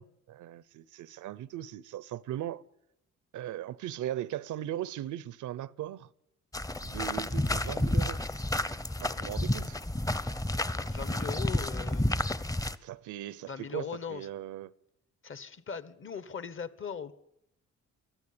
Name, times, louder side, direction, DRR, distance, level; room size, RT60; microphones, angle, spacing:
voice 1, 0.0-2.6 3.3-6.1 6.8-8.2 9.0-9.8 12.8-14.7, right 12 dB, 75° right, 0.8 m, -38 dB
sound 1, 6.5-12.8, left 1 dB, 10° left, 0.8 m, -30 dB
voice 2, 10.5-12.1 13.5-14.3 15.2-17.1, left 6 dB, 40° left, 1.3 m, -40 dB
24.0 x 14.5 x 8.7 m
cardioid pair, 90°, 30 cm